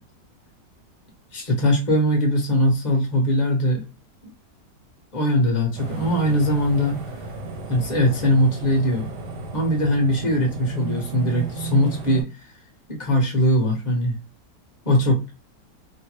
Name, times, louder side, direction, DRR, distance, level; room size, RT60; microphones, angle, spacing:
voice 1, 1.3-3.8 5.1-7.0 7.7-9.1 9.5-12.3 12.9-14.1 14.8-15.3, equal, 30° left, 0 dB, 0.9 m, -21 dB
sound 1, 5.8-12.2, right 3 dB, 75° right, 1.5 m, -33 dB
3.1 x 2.1 x 3.0 m, 0.27 s
omnidirectional pair, 1.9 m